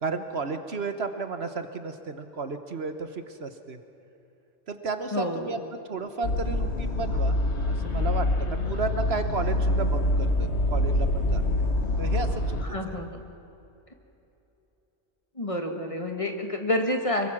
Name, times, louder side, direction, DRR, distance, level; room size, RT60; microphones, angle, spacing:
voice 1, 0.0-3.8 4.7-5.6 5.9-11.4 12.0-12.6 12.9-13.0, right 4 dB, 55° right, 8 dB, 1.3 m, -33 dB
voice 2, 5.1-5.5 12.6-13.2 15.4-17.3, left 1 dB, 25° left, 3 dB, 2.0 m, -29 dB
sound 1, 6.2-12.6, left 1 dB, 60° left, 1.7 m, -25 dB
25.0 x 23.0 x 6.1 m, 2.9 s
omnidirectional pair, 1.3 m